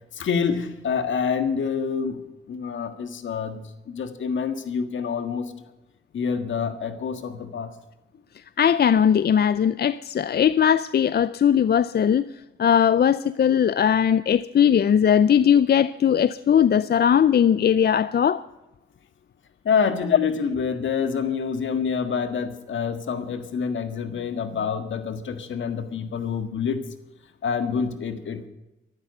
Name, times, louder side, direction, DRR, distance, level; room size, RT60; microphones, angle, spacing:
voice 1, 0.1-2.2 2.5-3.6 3.9-5.5 6.1-7.7 19.7-26.8 27.4-28.5, left 6 dB, 80° left, 9 dB, 1.7 m, -27 dB
voice 2, 8.6-12.2 12.6-18.4, left 8 dB, 55° left, 16 dB, 0.5 m, -19 dB
13.5 x 12.0 x 6.7 m, 0.96 s
cardioid pair, 60°, 20 cm